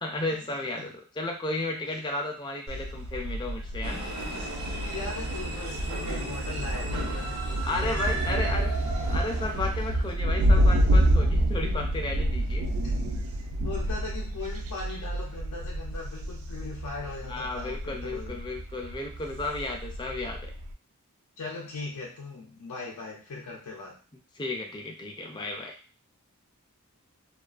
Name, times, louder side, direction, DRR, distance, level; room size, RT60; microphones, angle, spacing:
voice 1, 0.0-4.0 7.7-8.7 9.1-12.7 17.3-20.5 24.4-25.7, left 2 dB, 20° left, 2 dB, 0.3 m, -33 dB
Thunder, 2.7-20.7, right 1 dB, 65° right, 0.3 m, -28 dB
sound 1, 3.8-10.1, right 2 dB, 80° right, 0.8 m, -37 dB
voice 2, 4.3-8.6 9.7-9.9 12.8-18.4 21.4-24.0, left 3 dB, 85° left, -3 dB, 0.5 m, -40 dB
2.3 x 2.3 x 2.3 m, 0.36 s
head